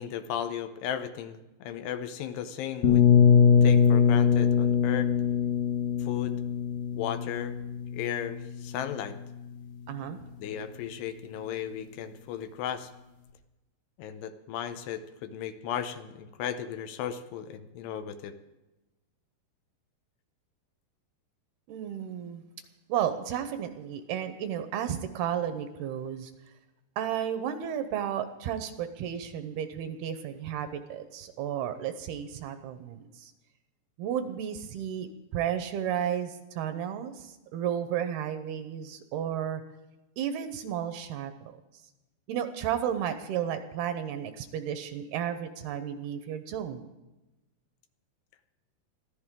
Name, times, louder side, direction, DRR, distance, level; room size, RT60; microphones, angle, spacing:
voice 1, 0.0-3.0 3.6-5.1 6.0-6.4 6.9-7.6 7.9-9.2 10.4-12.9 14.0-18.3, left 9 dB, 80° left, 9 dB, 3.0 m, -35 dB
sound 1, 2.8-8.6, left 7 dB, 60° left, 2.3 m, -22 dB
voice 2, 9.9-10.2 21.7-22.4 22.9-26.3 27.0-33.3 34.0-39.6 40.2-41.6 42.3-46.9, right 9 dB, 75° right, 9 dB, 2.6 m, -33 dB
21.5 x 15.0 x 3.7 m, 1.0 s
omnidirectional pair, 4.9 m